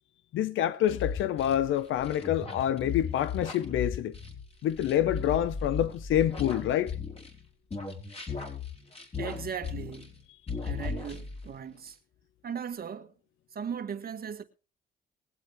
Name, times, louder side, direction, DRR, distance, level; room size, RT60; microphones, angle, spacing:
voice 1, 0.3-4.1 4.6-7.0, left 11 dB, 80° left, 0.7 m, -27 dB
sound 1, 0.9-7.4 7.7-10.2 10.5-11.5, left 5 dB, 30° left, 4.4 m, -36 dB
voice 2, 9.2-10.3 10.6-12.0 12.4-13.1 13.5-14.4, right 7 dB, 50° right, 1.7 m, -38 dB
21.5 x 8.2 x 3.4 m
cardioid pair, 90°, 20 cm